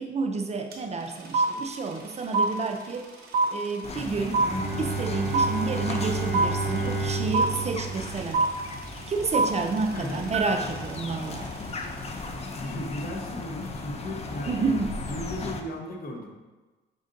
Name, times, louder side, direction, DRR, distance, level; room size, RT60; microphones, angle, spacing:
voice 1, 0.0-3.1 3.5-4.4 4.8-8.5 9.1-11.5 14.5-15.0, right 4 dB, 35° right, 5 dB, 0.4 m, -30 dB
sound 1, 0.7-0.8 1.0-12.2, right 3 dB, 50° right, 0.8 m, -27 dB
sound 2, 3.8-15.6, left 3 dB, 30° left, 0.5 m, -37 dB
Bowed string instrument, 4.4-10.1, right 4 dB, 10° right, 1.4 m, -32 dB
voice 2, 9.9-10.2 11.9-12.0 12.6-14.5 15.0-16.3, left 1 dB, 45° left, 1 dB, 0.9 m, -36 dB
5.2 x 3.8 x 2.5 m, 1.2 s
cardioid pair, 90°, 20 cm